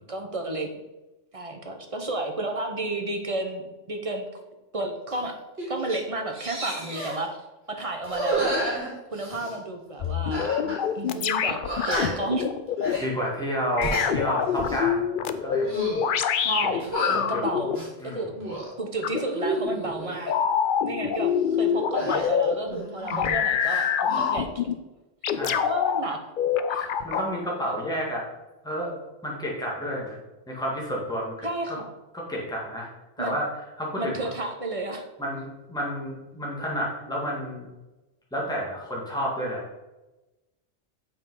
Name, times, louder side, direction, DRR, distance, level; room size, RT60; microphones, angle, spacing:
voice 1, 0.1-0.7 1.3-4.3 4.7-5.4 5.7-7.4 7.7-8.5 9.1-10.5 10.9-11.6 11.9-12.5 16.4-18.3 18.8-20.3 20.8-24.7 25.5-26.2 26.7-26.9 27.6-27.8 31.4-31.8 33.2-33.4 34.0-35.1, right 2 dB, 30° right, 3 dB, 0.9 m, -32 dB
sound 1, 5.1-5.3 5.6-6.0 6.3-7.2 8.0-9.5 10.3-10.8 11.1-11.2 11.6-12.3 12.8-13.1 13.6-14.1 14.6-14.8 15.5-16.1 16.8-17.2 17.7-18.7 19.2-20.1 21.9-23.4 23.6-24.3, right 1 dB, 55° right, 3.3 m, -31 dB
sound 2, 10.0-13.0 13.8-17.8 19.0-19.2 20.3-22.5 23.0-24.7 25.2-26.0 26.4-27.3, left 8 dB, 55° left, 0.6 m, -25 dB
voice 2, 13.0-15.2 15.4-15.7 17.3-17.4 18.0-18.2 25.3-25.6 26.7-28.3 28.6-28.9 29.2-30.2 30.5-31.8 32.1-32.9 33.2-33.5 33.8-34.3 35.2-37.7 38.3-39.6, equal, 5° left, -4 dB, 1.9 m, -30 dB
7.1 x 5.4 x 5.5 m, 1.0 s
omnidirectional pair, 1.2 m